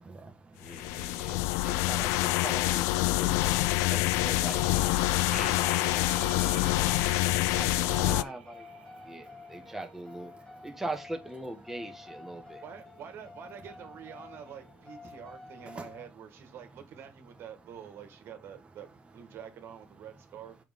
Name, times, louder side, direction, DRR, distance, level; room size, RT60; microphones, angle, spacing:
voice 1, 0.0-1.9 3.0-3.9 5.0-5.3 6.0-8.1 8.7-9.7 10.3-10.8 12.3-12.6 15.0-15.2 15.6-16.0, right 3 dB, 20° right, 1.3 m, -53 dB
voice 2, 0.6-4.6 5.3-6.7 7.5-8.7 9.0-10.3 10.6-12.6, right 2 dB, 5° right, 1.5 m, -41 dB
sound 1, 0.7-8.2, left 18 dB, 70° left, 0.4 m, -26 dB
sound 2, 3.3-16.1, left 3 dB, 15° left, 2.1 m, -51 dB
sound 3, 4.2-10.0, right 7 dB, 85° right, 1.1 m, -46 dB
voice 3, 12.6-20.6, right 8 dB, 55° right, 1.7 m, -47 dB
6.8 x 5.5 x 3.6 m
hypercardioid pair, 60°, 5 cm